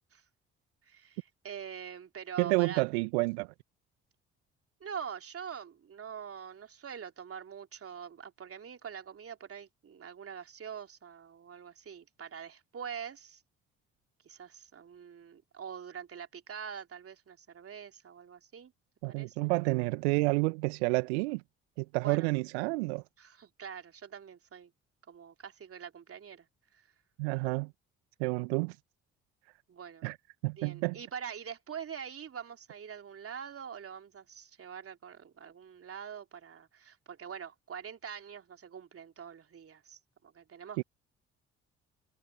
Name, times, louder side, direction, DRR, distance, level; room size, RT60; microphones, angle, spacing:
voice 1, 0.8-2.8 4.8-13.4 14.2-18.7 19.0-19.5 22.0-22.3 23.2-24.7 25.1-26.5 26.7-26.9 29.7-30.1 30.6-40.8, right 7 dB, 40° right, 3.3 m, -44 dB
voice 2, 2.4-3.5 19.0-21.4 21.8-23.0 27.2-27.7 28.2-28.8 30.0-30.2 30.4-31.0 40.8-40.9, right 27 dB, 70° right, 1.7 m, -29 dB
figure-of-eight pair, 45°, 34 cm